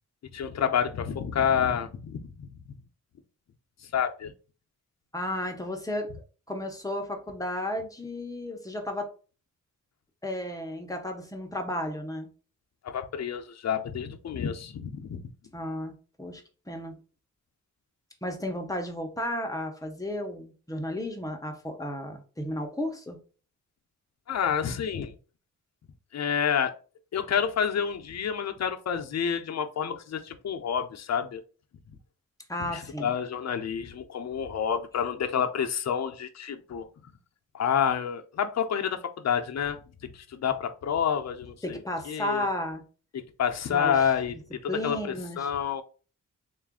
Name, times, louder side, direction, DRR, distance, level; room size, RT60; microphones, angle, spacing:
voice 1, 0.3-2.5 3.9-4.3 12.8-15.3 24.3-25.2 26.1-26.7 27.1-31.4 32.7-36.9 37.5-41.8 42.1-42.5 43.4-45.8, left 7 dB, 60° left, 0.6 m, -29 dB
voice 2, 5.1-6.1 6.5-9.1 10.2-12.3 15.5-16.4 16.7-17.0 18.2-23.2 32.5-33.1 41.6-42.8 43.7-44.1 44.7-45.5, left 1 dB, 10° left, 0.7 m, -33 dB
3.8 x 2.4 x 3.6 m
wide cardioid pair, 130°, 30 cm